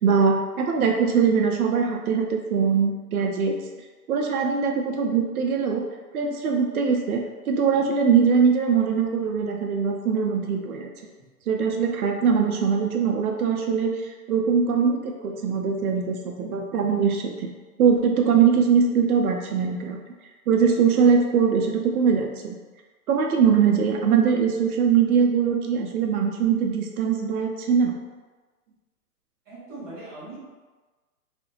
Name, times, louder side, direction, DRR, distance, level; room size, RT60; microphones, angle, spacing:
voice 1, 0.0-3.6 4.1-5.8 6.1-10.9 11.5-17.5 17.8-20.0 20.5-22.6 23.1-27.9, right 6 dB, 65° right, 2 dB, 0.5 m, -22 dB
voice 2, 20.6-21.1 29.5-30.4, right 2 dB, 15° right, -13 dB, 0.4 m, -41 dB
2.4 x 2.1 x 2.9 m, 1.3 s
hypercardioid pair, 145°, 47 cm